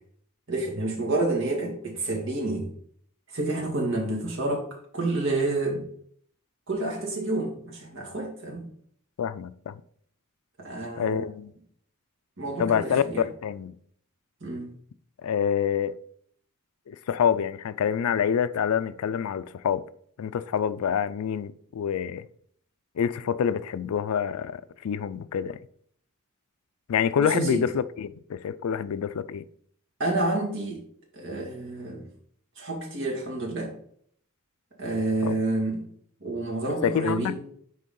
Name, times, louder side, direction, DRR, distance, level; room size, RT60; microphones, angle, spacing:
voice 1, 0.5-2.7 3.3-4.7 4.9-5.8 6.7-8.7 10.6-11.3 12.4-13.2 14.4-14.7 27.2-27.6 30.0-30.8 31.1-32.1 32.6-33.7 34.8-35.8 36.2-37.4, right 2 dB, 60° right, 1.9 m, -29 dB
voice 2, 9.2-9.7 11.0-11.5 12.6-13.7 15.2-16.0 16.9-19.8 20.2-22.2 23.0-25.6 26.9-29.4 35.2-35.3 36.8-37.5, left 7 dB, 80° left, 0.4 m, -27 dB
6.5 x 4.6 x 3.7 m
head